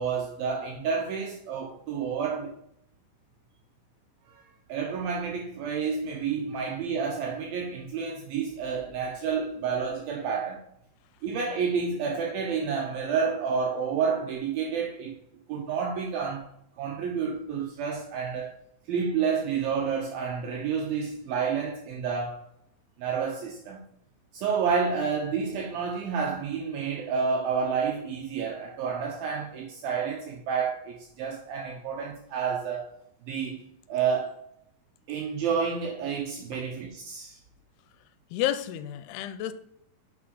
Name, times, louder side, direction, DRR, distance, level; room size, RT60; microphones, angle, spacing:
voice 1, 0.0-2.5 4.3-4.4 4.7-10.6 11.2-15.2 15.5-16.5 16.8-18.6 18.9-22.4 23.0-23.8 24.3-32.9 33.2-33.6 33.9-34.4 35.1-37.4, right 6 dB, 75° right, 2.5 m, -29 dB
voice 2, 38.3-39.5, left 12 dB, 85° left, 2.6 m, -30 dB
6.1 x 6.1 x 4.7 m
omnidirectional pair, 4.7 m